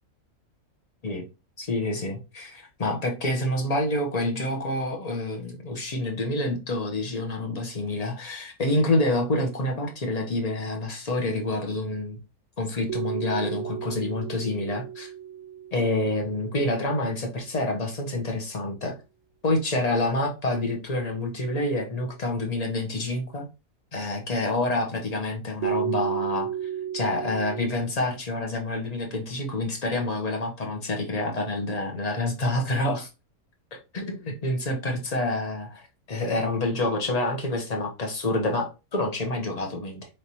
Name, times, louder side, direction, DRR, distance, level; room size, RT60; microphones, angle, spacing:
voice 1, 1.6-12.2 12.6-15.1 15.7-18.9 19.4-23.5 23.9-26.5 26.9-33.1 33.9-35.8 36.1-40.1, left 2 dB, 35° left, 0.8 m, -27 dB
sound 1, 12.9-17.0 25.6-27.8, right 10 dB, 70° right, 0.9 m, -33 dB
4.5 x 3.3 x 2.8 m
omnidirectional pair, 1.5 m